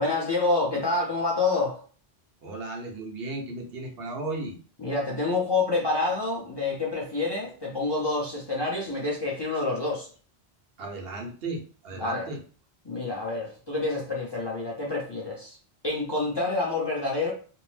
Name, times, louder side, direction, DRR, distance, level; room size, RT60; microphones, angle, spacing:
voice 1, 0.0-1.8 4.8-10.1 12.0-12.3 12.8-15.6 15.8-17.3, left 3 dB, 30° left, -4 dB, 0.6 m, -27 dB
voice 2, 2.4-4.6 10.8-12.4, right 2 dB, 65° right, 1 dB, 0.9 m, -35 dB
2.6 x 2.0 x 3.2 m, 0.40 s
omnidirectional pair, 1.1 m